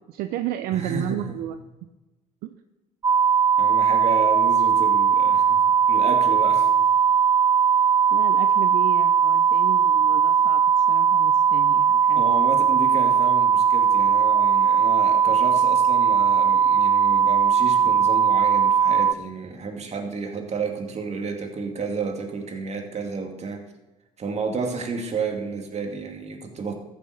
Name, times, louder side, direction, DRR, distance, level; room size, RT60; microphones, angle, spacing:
voice 1, 0.1-1.6 2.4-2.5 8.1-10.6 10.9-12.2, right 12 dB, 70° right, 9 dB, 0.7 m, -32 dB
voice 2, 0.7-1.4 3.6-5.6 5.9-6.9 12.1-23.6 24.2-26.7, right 4 dB, 45° right, 3 dB, 2.6 m, -31 dB
sound 1, 3.0-19.1, right 7 dB, 25° right, 0.5 m, -19 dB
14.0 x 7.4 x 6.6 m, 1.1 s
hypercardioid pair, 60°, 16 cm